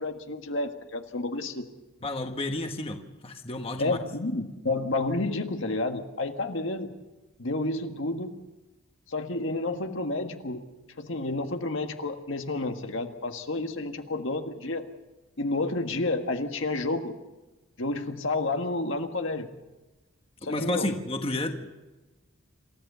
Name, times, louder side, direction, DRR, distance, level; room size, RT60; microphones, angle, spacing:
voice 1, 0.0-1.7 3.8-6.9 7.4-8.3 9.1-10.6 11.0-14.8 15.4-17.2 17.8-19.5 20.4-20.9, left 2 dB, 70° left, 5 dB, 1.6 m, -30 dB
voice 2, 2.0-4.0 20.4-21.7, left 1 dB, 30° left, 4 dB, 1.4 m, -31 dB
27.0 x 14.5 x 6.9 m, 1.1 s
head